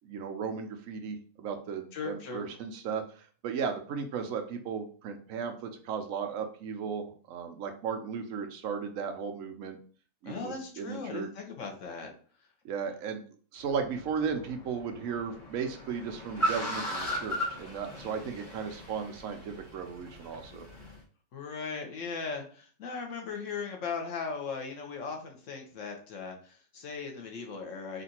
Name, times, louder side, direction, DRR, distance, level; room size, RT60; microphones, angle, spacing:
voice 1, 0.0-9.8 10.2-11.3 12.6-13.2 13.5-20.7, right 6 dB, 70° right, 5 dB, 0.8 m, -35 dB
voice 2, 1.9-2.4 10.2-12.1 21.3-28.0, left 5 dB, 55° left, 2 dB, 1.0 m, -38 dB
Car, 13.6-21.0, equal, 30° left, 1.0 m, -37 dB
3.8 x 2.5 x 4.2 m, 0.43 s
omnidirectional pair, 2.0 m